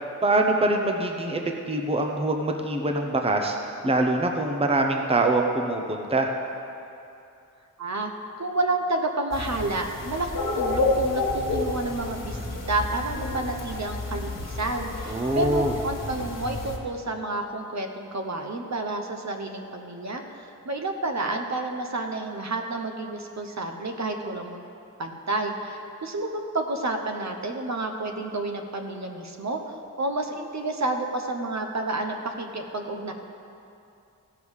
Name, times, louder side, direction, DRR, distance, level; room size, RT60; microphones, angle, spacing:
voice 1, 0.2-1.4 1.7-3.6 3.8-6.3 15.1-15.7, right 2 dB, 15° right, 3 dB, 0.8 m, -24 dB
voice 2, 7.8-8.1 8.4-24.6 25.0-33.1, right 2 dB, 50° right, 4 dB, 1.0 m, -30 dB
sound 1, 9.3-16.8, left 2 dB, 70° left, 1.7 m, -30 dB
16.0 x 5.4 x 6.4 m, 2.7 s
wide cardioid pair, 105°, 34 cm